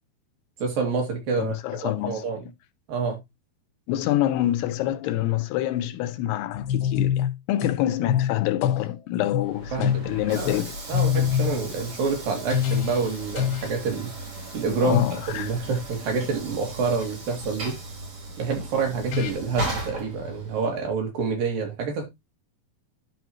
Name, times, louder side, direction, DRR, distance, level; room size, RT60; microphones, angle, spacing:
voice 1, 0.6-1.5 1.8-2.4 2.9-3.2 9.7-10.0 10.3-10.6 10.9-14.1 14.5-17.7 18.4-22.1, right 4 dB, 65° right, 4.0 m, -27 dB
voice 2, 1.4-2.5 3.9-10.7 14.8-15.5, left 13 dB, 85° left, 2.9 m, -26 dB
sound 1, 6.5-7.8 8.1-8.9 9.3-9.5 9.8-10.1 10.4-10.6 10.9-11.6 12.5-13.1 13.4-13.8 14.9-15.2 18.6-18.7 19.1-19.3, left 9 dB, 70° left, 3.2 m, -25 dB
Train / Sliding door, 9.4-20.8, right 2 dB, 45° right, 5.5 m, -37 dB
12.0 x 5.2 x 3.0 m
omnidirectional pair, 4.6 m